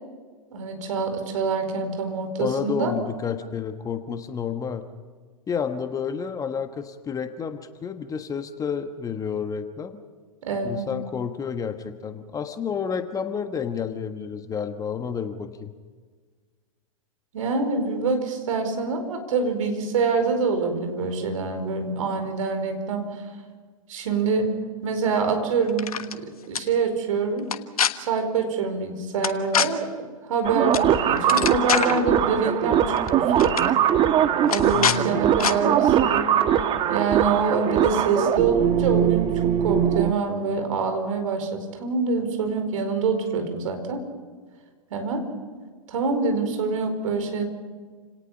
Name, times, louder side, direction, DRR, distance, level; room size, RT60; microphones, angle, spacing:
voice 1, 0.5-2.9 10.4-10.9 17.3-23.0 23.9-24.5 24.8-26.0 26.5-27.5 27.9-29.9 30.3-33.8 34.5-36.3 36.9-44.0 44.9-45.2 45.9-47.4, right 4 dB, 65° right, 6 dB, 4.8 m, -25 dB
voice 2, 2.4-4.9 5.5-10.0 10.6-15.7 34.7-35.1, left 7 dB, 20° left, 8 dB, 1.4 m, -30 dB
sound 1, 25.7-26.2 26.5-26.6 27.4-27.9 29.2-29.7 30.7-30.9 31.2-32.0 33.0-33.1 33.4-33.7 34.5-35.0 35.4-35.5, left 8 dB, 75° left, 1.4 m, -24 dB
sound 2, 30.4-40.1, right 9 dB, 25° right, 1.4 m, -21 dB
29.0 x 18.5 x 5.8 m, 1.5 s
hypercardioid pair, 105°, 19 cm